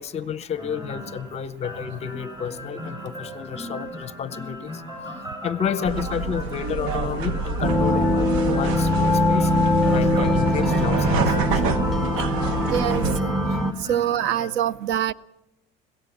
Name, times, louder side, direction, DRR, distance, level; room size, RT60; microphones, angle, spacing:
voice 1, 0.0-4.8 5.4-9.5 9.9-11.7, left 8 dB, 30° left, 15 dB, 0.7 m, -31 dB
sound 1, 0.6-14.5, left 1 dB, 20° right, 7.3 m, -37 dB
sound 2, 5.8-13.2, right 5 dB, 75° right, 1.1 m, -27 dB
sound 3, 7.6-13.7, left 1 dB, ahead, 0.8 m, -22 dB
voice 2, 12.7-13.3 13.8-15.1, right 10 dB, 60° right, 18 dB, 0.6 m, -24 dB
21.5 x 17.0 x 7.2 m, 0.89 s
cardioid pair, 160°, 21 cm